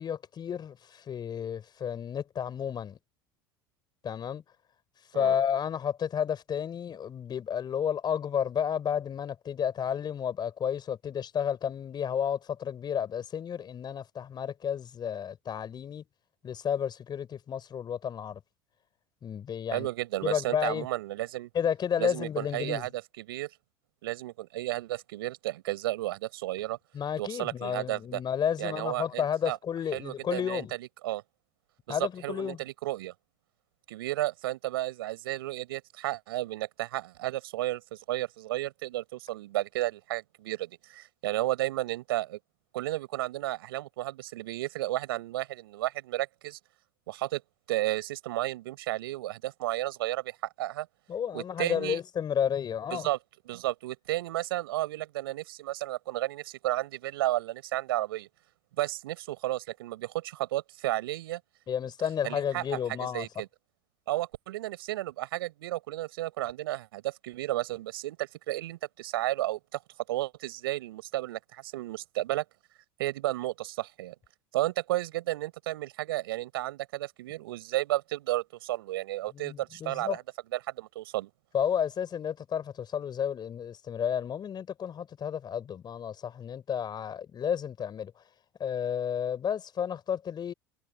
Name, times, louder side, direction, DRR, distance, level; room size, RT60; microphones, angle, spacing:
voice 1, 0.0-3.0 4.0-4.4 5.1-16.0 16.4-18.4 19.2-19.9 20.2-20.9 21.5-22.9 26.9-30.8 31.9-32.6 51.1-53.1 61.7-63.3 79.3-80.2 81.5-88.1 88.6-90.5, left 8 dB, 35° left, 5.1 m, -31 dB
voice 2, 19.7-21.5 22.0-23.5 24.0-26.8 27.2-28.2 28.6-29.6 29.9-31.2 31.9-33.1 33.9-42.4 42.7-46.6 47.1-47.4 47.7-50.9 51.3-52.0 52.9-53.2 53.5-58.3 58.8-61.4 62.2-63.5 64.1-69.6 70.1-72.4 73.0-74.1 74.5-80.2 80.5-81.3, right 16 dB, 75° right, 5.6 m, -33 dB
hypercardioid pair, 80°, 12 cm